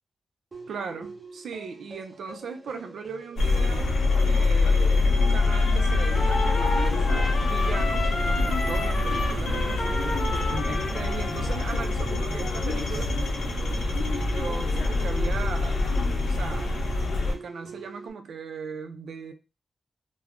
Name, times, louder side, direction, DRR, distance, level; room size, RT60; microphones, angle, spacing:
sound 1, 0.5-18.1, right 3 dB, 30° right, 0.6 m, -43 dB
voice 1, 0.7-3.9 4.2-10.0 10.6-13.2 13.7-15.8 16.3-16.7 17.2-19.3, right 5 dB, 85° right, 0.4 m, -38 dB
sound 2, 3.4-17.3, left 3 dB, 75° left, 0.7 m, -24 dB
Trumpet, 5.4-12.0, left 2 dB, 35° left, 0.5 m, -33 dB
2.3 x 2.0 x 3.5 m
wide cardioid pair, 180°, 0 cm